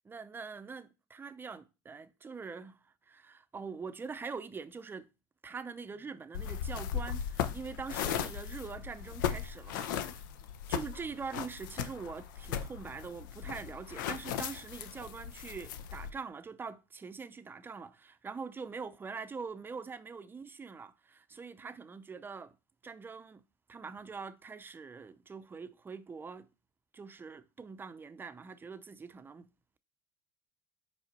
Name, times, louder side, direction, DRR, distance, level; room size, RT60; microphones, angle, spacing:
voice 1, 0.1-5.1 5.4-10.3 10.7-22.6 22.8-23.4 23.7-26.5 26.9-29.5, right 5 dB, 20° right, 0.5 m, -44 dB
sound 1, 6.3-16.1, left 8 dB, 90° left, 0.6 m, -37 dB
5.1 x 4.9 x 4.1 m
supercardioid pair, 100°, 10 cm